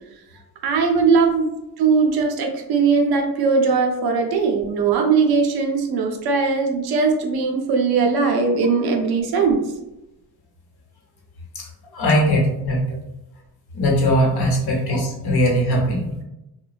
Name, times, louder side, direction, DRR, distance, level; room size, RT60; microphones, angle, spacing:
voice 1, 0.6-9.7, right 5 dB, 60° right, 4 dB, 0.6 m, -19 dB
voice 2, 11.9-12.8 13.7-16.1, equal, 65° left, -1 dB, 1.0 m, -20 dB
3.0 x 2.2 x 2.4 m, 0.92 s
cardioid pair, 125°, 41 cm